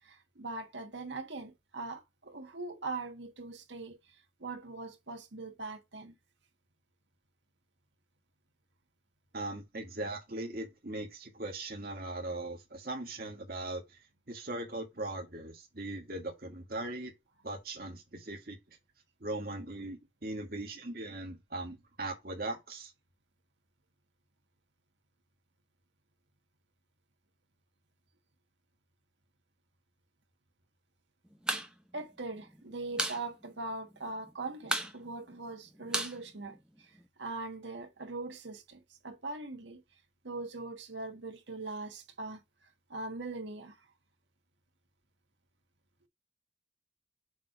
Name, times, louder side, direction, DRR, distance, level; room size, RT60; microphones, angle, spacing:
voice 1, 0.0-4.0 4.4-6.1 31.9-36.9 37.2-39.8 40.2-42.4 42.9-43.7, right 3 dB, 75° right, 1.5 m, -41 dB
voice 2, 9.3-17.1 17.4-18.6 19.2-22.9, right 2 dB, 50° right, 1.6 m, -39 dB
sound 1, 31.3-31.7 32.0-32.1 32.4-33.2 33.5-33.6 33.9-34.3 34.6-37.0, right 1 dB, 5° right, 0.7 m, -34 dB
7.3 x 3.0 x 4.7 m
head